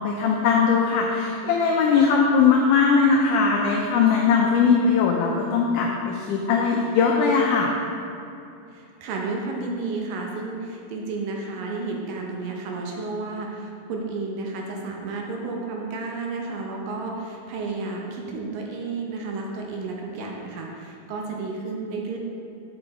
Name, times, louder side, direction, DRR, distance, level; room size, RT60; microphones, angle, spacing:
voice 1, 0.0-7.7, left 5 dB, 90° left, 0 dB, 1.8 m, -20 dB
voice 2, 8.7-22.2, right 3 dB, 75° right, 0 dB, 2.3 m, -32 dB
7.5 x 6.0 x 3.9 m, 2.6 s
omnidirectional pair, 4.3 m